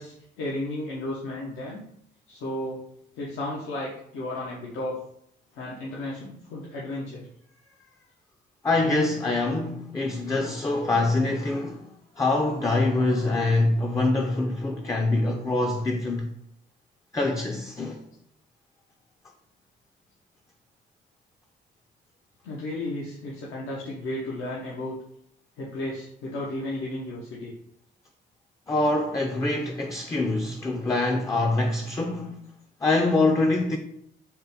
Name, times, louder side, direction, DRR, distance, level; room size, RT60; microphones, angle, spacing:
voice 1, 0.0-1.8 2.3-2.8 3.2-5.0 5.5-7.3 22.4-25.0 25.6-27.5, left 1 dB, 85° left, 0.7 m, -33 dB
voice 2, 8.6-11.9 12.2-16.3 17.1-18.0 28.7-32.4 32.8-33.8, left 2 dB, 15° left, 0.4 m, -24 dB
3.7 x 2.1 x 4.0 m
cardioid pair, 90°, 20 cm